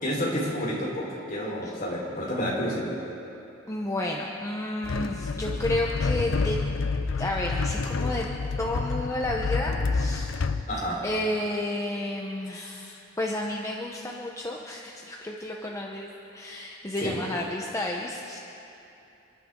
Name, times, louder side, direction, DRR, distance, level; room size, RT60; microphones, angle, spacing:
voice 1, 0.0-2.9 10.7-11.0 12.6-12.8 17.0-17.2, equal, 45° left, -5 dB, 4.1 m, -30 dB
voice 2, 3.7-6.6 7.2-8.3 8.6-10.3 11.0-18.4, left 1 dB, 15° left, -1 dB, 0.9 m, -31 dB
sound 1, 4.8-10.7, left 4 dB, 85° left, 0.6 m, -28 dB
29.5 x 11.5 x 3.7 m, 2.9 s
head